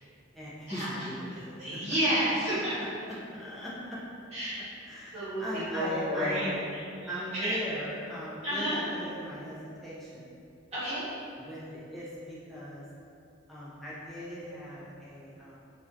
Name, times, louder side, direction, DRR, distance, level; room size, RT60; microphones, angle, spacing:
voice 1, 0.3-1.8 2.8-3.7 4.9-6.6 7.1-10.3 11.4-12.8 13.5-15.5, equal, ahead, -10 dB, 0.5 m, -39 dB
voice 2, 1.3-2.7 4.3-4.6 5.1-7.6 8.4-8.8 10.7-11.1, equal, 30° right, -13 dB, 1.2 m, -31 dB
2.6 x 2.2 x 2.5 m, 2.6 s
head